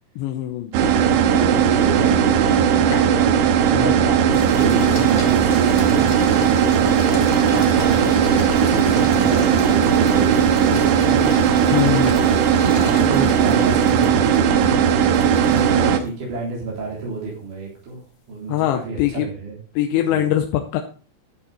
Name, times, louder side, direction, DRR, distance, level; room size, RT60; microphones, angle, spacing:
voice 1, 0.2-0.7 3.7-4.1 11.7-12.2 18.5-19.3 19.8-20.8, left 12 dB, 80° left, 4 dB, 2.9 m, -22 dB
voice 2, 0.7-2.8 3.3-10.3 10.7-11.2 12.5-15.0 15.5-18.0 18.3-19.5 20.1-20.4, right 3 dB, 40° right, -5 dB, 4.7 m, -30 dB
sound 1, 0.7-16.0, right 8 dB, 80° right, 3.4 m, -17 dB
sound 2, 2.3-3.9 4.3-16.1, left 4 dB, 50° left, 3.5 m, -35 dB
12.0 x 7.8 x 4.2 m, 0.38 s
omnidirectional pair, 5.7 m